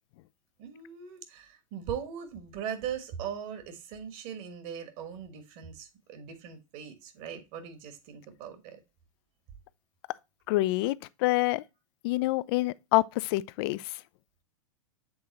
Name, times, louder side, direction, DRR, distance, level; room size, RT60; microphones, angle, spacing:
voice 1, 0.6-8.8, right 8 dB, 45° right, 1.5 m, -40 dB
voice 2, 10.5-11.6 12.0-14.0, left 19 dB, 45° left, 0.4 m, -27 dB
7.8 x 3.7 x 4.0 m
figure-of-eight pair, 100°, 18 cm